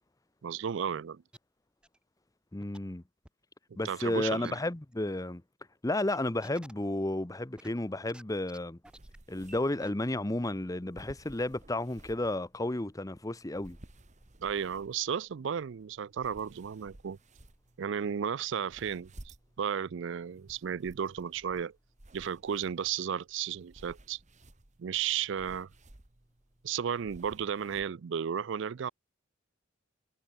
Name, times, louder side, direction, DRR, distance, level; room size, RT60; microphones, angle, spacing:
voice 1, 0.4-1.2 3.8-4.6 14.4-17.2 17.8-21.7 22.1-24.2 24.8-25.7 26.6-28.9, right 8 dB, 65° right, 0.4 m, -34 dB
sound 1, 1.3-1.4 1.8-2.0 2.6-2.8 3.2-3.3 4.4-4.6 4.9-5.0 6.1-6.7 7.6-8.2 8.5-8.6 8.8-9.2 9.5-9.6 9.8-9.9, right 1 dB, 5° right, 2.5 m, -52 dB
voice 2, 2.5-3.0 3.8-5.4 5.8-8.8 9.3-13.8, left 1 dB, 15° left, 0.8 m, -32 dB
sound 2, 8.8-27.9, right 1 dB, 35° right, 1.6 m, -56 dB
head